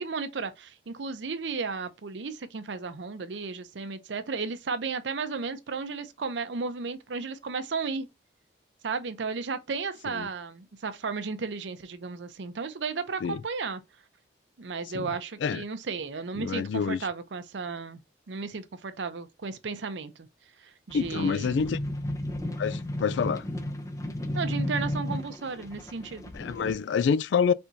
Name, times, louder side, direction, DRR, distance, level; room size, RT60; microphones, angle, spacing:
voice 1, 0.0-8.1 8.8-13.8 14.6-18.0 18.3-20.1 20.6-21.7 24.3-26.2, right 4 dB, 80° right, 0.6 m, -34 dB
voice 2, 16.4-17.0 20.9-21.8 22.6-23.4 26.3-27.5, left 6 dB, 85° left, 0.3 m, -27 dB
sound 1, 20.9-26.7, left 1 dB, 20° left, 0.5 m, -33 dB
4.4 x 3.5 x 2.6 m
head